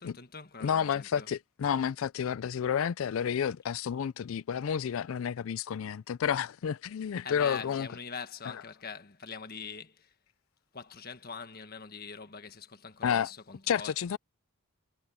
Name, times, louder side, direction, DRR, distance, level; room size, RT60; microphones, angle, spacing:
voice 1, 0.0-1.3 7.2-10.1 10.7-13.9, left 5 dB, 45° left, 1.6 m, -43 dB
voice 2, 0.6-7.9 13.0-13.3 13.7-14.2, left 8 dB, 70° left, 0.4 m, -30 dB
head